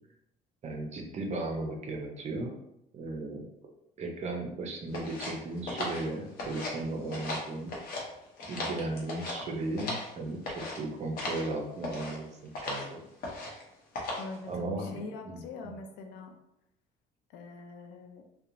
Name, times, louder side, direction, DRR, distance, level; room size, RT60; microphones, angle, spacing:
voice 1, 0.6-2.5 2.9-3.7 4.0-7.7 8.5-12.3 12.6-13.1 14.5-15.7, right 2 dB, 40° right, 2 dB, 0.6 m, -36 dB
sound 1, 4.9-6.8 7.1-8.0 8.4-10.1 10.4-10.8 11.2-11.5 11.8-12.2 12.5-12.9 13.2-13.6 13.9-14.4, left 2 dB, 60° left, 0.8 m, -37 dB
voice 2, 14.2-16.3 17.3-18.2, left 3 dB, 85° left, 4 dB, 0.5 m, -43 dB
2.8 x 2.1 x 2.6 m, 0.82 s
cardioid pair, 110°, 17 cm